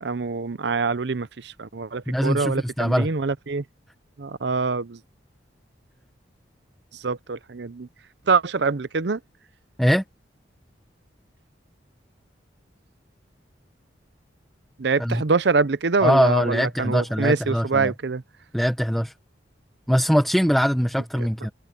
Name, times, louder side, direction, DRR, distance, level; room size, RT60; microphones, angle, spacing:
voice 1, 0.0-3.6 4.2-5.0 6.9-7.9 8.3-9.2 14.8-18.2, right 4 dB, 65° right, 0.7 m, -24 dB
voice 2, 2.1-3.1 9.8-10.0 15.0-15.2 16.0-17.9 18.5-19.1 19.9-21.5, equal, ahead, 1.2 m, -22 dB
head